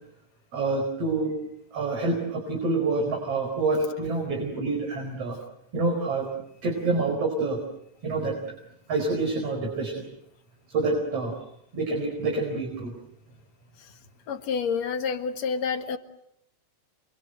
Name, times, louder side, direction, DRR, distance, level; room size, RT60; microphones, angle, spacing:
voice 1, 0.5-1.4 1.7-5.4 5.7-6.3 6.6-7.6 8.0-8.4 8.9-10.1 10.7-11.5 11.7-12.9, right 3 dB, 50° right, 3 dB, 5.7 m, -27 dB
voice 2, 14.3-16.0, left 6 dB, 65° left, 8 dB, 2.8 m, -28 dB
28.0 x 25.0 x 7.9 m, 0.76 s
omnidirectional pair, 3.4 m